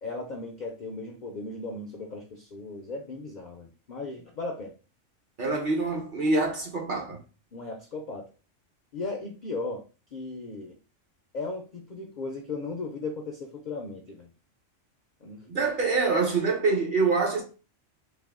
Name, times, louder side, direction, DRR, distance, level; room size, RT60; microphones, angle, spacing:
voice 1, 0.0-4.7 7.5-8.3 8.9-9.8 10.1-10.8 11.3-14.3 15.2-15.4, left 3 dB, 60° left, 0.5 m, -36 dB
voice 2, 5.4-7.2 15.5-17.4, right 3 dB, 45° right, 0.9 m, -25 dB
3.2 x 2.1 x 3.5 m
omnidirectional pair, 1.3 m